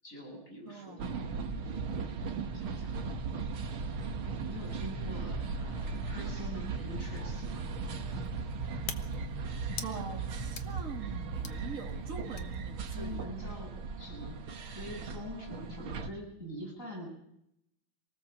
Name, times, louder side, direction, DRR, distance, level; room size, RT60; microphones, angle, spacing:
voice 1, 0.0-2.2 2.5-3.0 4.4-7.6 12.9-14.4 14.7-17.1, equal, 40° left, -1 dB, 7.3 m, -45 dB
voice 2, 0.7-1.1 9.8-13.3, right 4 dB, 40° right, 0 dB, 3.2 m, -44 dB
sound 1, 1.0-16.1, right 4 dB, 80° right, 2.3 m, -37 dB
sound 2, 6.9-13.2, left 7 dB, 75° left, 2.3 m, -48 dB
26.5 x 19.0 x 7.3 m, 0.78 s
omnidirectional pair, 2.2 m